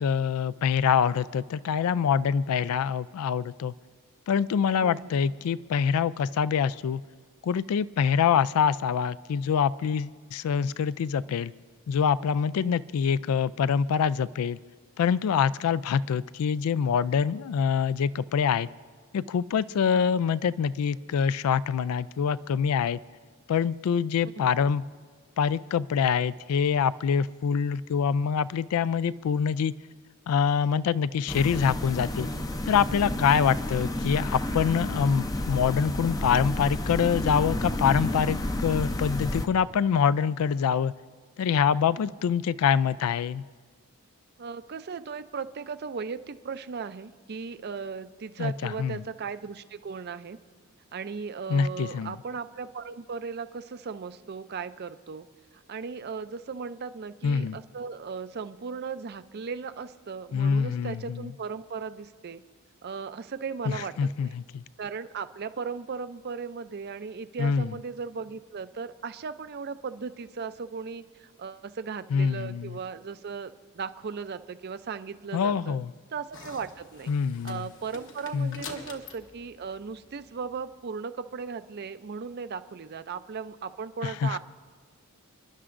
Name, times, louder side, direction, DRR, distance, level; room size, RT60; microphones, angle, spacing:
voice 1, 0.0-3.7 4.3-7.0 7.4-11.5 11.9-14.6 15.0-18.7 19.1-23.0 23.5-24.8 25.4-29.7 30.3-32.3 32.7-40.9 41.4-43.4 48.4-49.0 51.5-52.2 57.2-57.6 60.3-61.3 63.7-64.6 67.4-67.7 72.1-72.8 75.3-75.9 77.1-77.7 78.3-78.6 84.0-84.4, left 7 dB, 75° left, 18 dB, 0.3 m, -25 dB
voice 2, 4.8-5.1 12.6-12.9 19.9-20.2 44.4-50.4 50.9-55.3 55.5-62.4 62.8-63.9 64.2-64.3 64.8-75.8 76.1-77.1 77.4-84.4, right 5 dB, 45° right, 12 dB, 0.4 m, -37 dB
sound 1, 31.3-39.5, left 1 dB, 15° left, 0.5 m, -31 dB
sound 2, 76.3-80.6, left 4 dB, 55° left, 1.1 m, -46 dB
29.5 x 11.0 x 2.5 m, 1.5 s
head